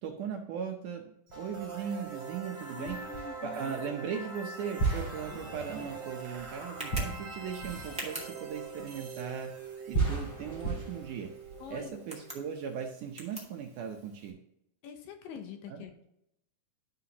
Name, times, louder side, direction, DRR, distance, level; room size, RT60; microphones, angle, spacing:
voice 1, 0.0-3.0 3.4-9.5 9.9-11.3 11.7-14.4 15.7-15.9, right 7 dB, 75° right, 2 dB, 2.0 m, -38 dB
sound 1, 1.3-2.0 2.9-3.7 4.8-9.3 9.9-11.9, right 3 dB, 35° left, 3.3 m, -36 dB
sound 2, 1.3-13.1, right 4 dB, 40° right, 3.0 m, -44 dB
voice 2, 2.8-3.7 11.6-11.9 14.8-16.0, left 7 dB, 75° left, 5 dB, 2.3 m, -44 dB
Tick, 5.1-14.3, right 1 dB, 5° right, 1.2 m, -48 dB
11.5 x 5.6 x 2.9 m, 0.80 s
omnidirectional pair, 4.4 m